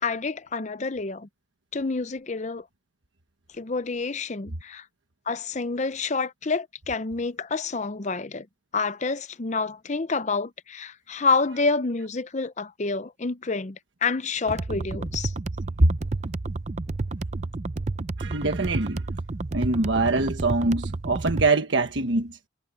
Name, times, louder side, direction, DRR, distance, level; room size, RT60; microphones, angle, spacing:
voice 1, 0.0-1.3 1.7-2.6 3.6-4.8 5.3-8.5 8.7-13.8 14.0-15.3, left 4 dB, 35° left, 0.6 m, -28 dB
sound 1, 14.5-21.5, right 2 dB, 35° right, 0.6 m, -31 dB
voice 2, 18.2-19.0 19.5-22.4, right 2 dB, 65° right, 1.4 m, -23 dB
head